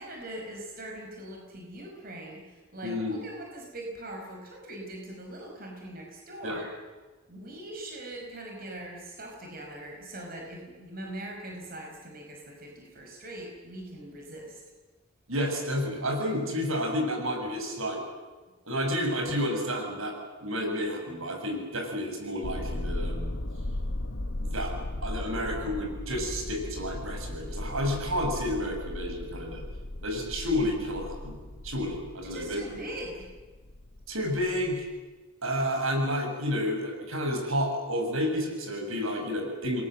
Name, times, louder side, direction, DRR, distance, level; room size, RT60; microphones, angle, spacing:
voice 1, 0.0-6.7 7.3-14.6 32.2-33.3, right 1 dB, 45° right, 0 dB, 5.7 m, -41 dB
voice 2, 2.8-3.2 6.4-6.6 15.3-18.0 18.7-20.1 20.4-23.3 24.4-24.7 25.0-29.6 30.0-31.4 31.6-32.6 34.1-34.8 35.4-39.8, equal, 80° right, 2 dB, 7.1 m, -30 dB
sound 1, 22.4-34.9, left 1 dB, 65° left, 1.3 m, -37 dB
29.0 x 22.0 x 7.8 m, 1.3 s
head